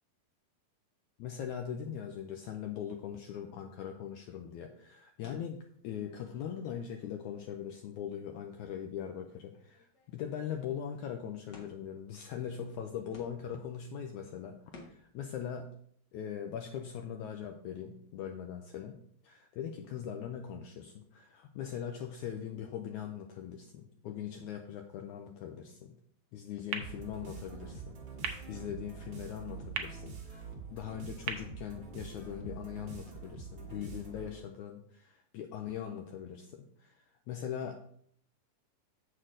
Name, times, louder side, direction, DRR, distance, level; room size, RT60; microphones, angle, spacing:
voice 1, 1.2-15.7 16.1-26.0 26.3-28.0 28.5-30.4 30.7-37.0 37.3-37.9, left 8 dB, 85° left, 4 dB, 1.7 m, -41 dB
sound 1, 5.2-7.8 8.2-8.3 8.9-9.0 9.3-9.4 9.6-10.6 11.5-12.0 12.7-12.8 13.1-13.7 14.7-15.2, left 2 dB, 65° left, 1.0 m, -57 dB
sound 2, 26.7-32.6, right 7 dB, 80° right, 1.4 m, -44 dB
sound 3, 26.8-34.5, right 4 dB, 50° right, 1.6 m, -46 dB
7.7 x 6.5 x 3.8 m, 0.63 s
omnidirectional pair, 4.0 m